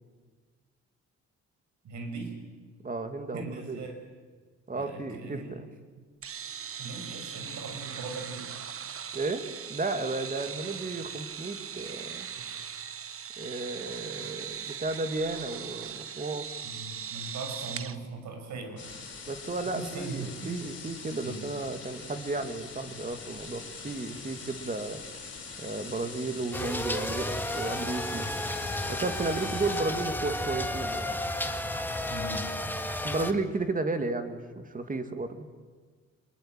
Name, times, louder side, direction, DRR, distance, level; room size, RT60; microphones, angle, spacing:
voice 1, 1.8-2.4 3.3-4.0 4.7-5.6 5.9-6.0 6.8-8.5 12.3-12.5 16.6-18.9 19.6-20.6 21.2-21.5 32.1-32.5, right 3 dB, 70° right, 5 dB, 6.1 m, -39 dB
voice 2, 2.8-3.9 4.7-5.7 9.1-12.3 13.4-16.5 19.3-25.0 25.6-28.3 28.9-31.2 33.0-35.5, right 3 dB, 25° right, 8 dB, 2.5 m, -33 dB
sound 1, 6.2-18.0, right 7 dB, 50° right, 1.3 m, -39 dB
sound 2, 18.8-29.8, left 4 dB, 40° left, 6.7 m, -43 dB
sound 3, 26.5-33.3, left 1 dB, 5° left, 1.8 m, -32 dB
26.0 x 21.5 x 9.2 m, 1.5 s
cardioid pair, 90°, 30 cm